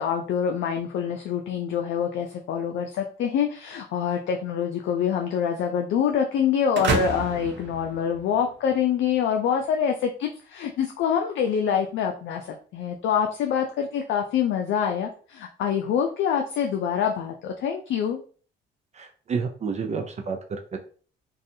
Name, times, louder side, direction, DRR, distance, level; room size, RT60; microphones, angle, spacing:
voice 1, 0.0-18.2, left 8 dB, 70° left, 3 dB, 0.4 m, -25 dB
sound 1, 6.7-8.7, right 4 dB, 65° right, 0.7 m, -29 dB
voice 2, 18.9-20.8, right 5 dB, 35° right, 4 dB, 0.4 m, -30 dB
2.5 x 2.3 x 2.6 m, 0.42 s
cardioid pair, 90°, 20 cm